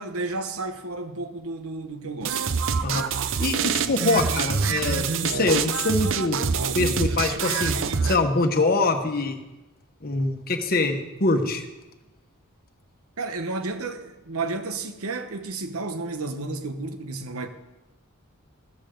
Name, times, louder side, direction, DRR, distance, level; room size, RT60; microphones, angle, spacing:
voice 1, 0.0-2.4 2.9-3.2 13.2-17.5, right 3 dB, 80° right, 1.0 m, -32 dB
sound 1, 2.2-8.2, right 6 dB, 65° right, 0.6 m, -25 dB
voice 2, 3.4-6.4 6.7-7.8 8.0-9.4 10.0-11.7, left 3 dB, 45° left, 1.2 m, -24 dB
14.5 x 13.5 x 3.9 m
head